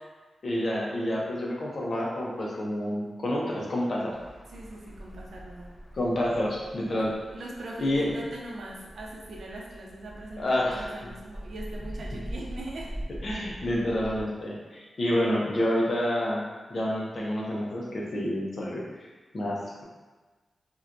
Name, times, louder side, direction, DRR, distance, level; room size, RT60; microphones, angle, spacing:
voice 1, 0.4-4.2 5.9-7.2 7.8-8.2 10.4-10.9 13.2-18.9 19.3-19.8, left 1 dB, 50° left, -3 dB, 0.6 m, -28 dB
sound 1, 4.1-14.2, right 1 dB, 5° right, 1.3 m, -43 dB
voice 2, 4.5-5.7 7.0-12.9, right 1 dB, 65° right, -2 dB, 0.6 m, -41 dB
4.3 x 2.2 x 2.5 m, 1.3 s
wide cardioid pair, 140°, 0 cm